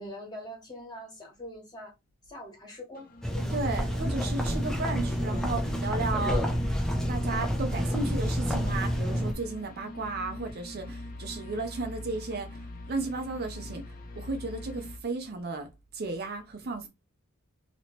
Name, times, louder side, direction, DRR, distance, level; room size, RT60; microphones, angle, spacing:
voice 1, 0.0-1.9 2.3-3.6, equal, 20° left, 1.3 m, -43 dB
sound 1, 2.9-15.0, left 1 dB, 40° left, 0.7 m, -43 dB
sound 2, 3.2-9.3, equal, ahead, 0.5 m, -29 dB
voice 2, 3.5-6.5 7.1-13.8 14.2-15.7 15.9-16.9, right 3 dB, 45° right, 0.5 m, -34 dB
3.0 x 2.9 x 3.0 m
head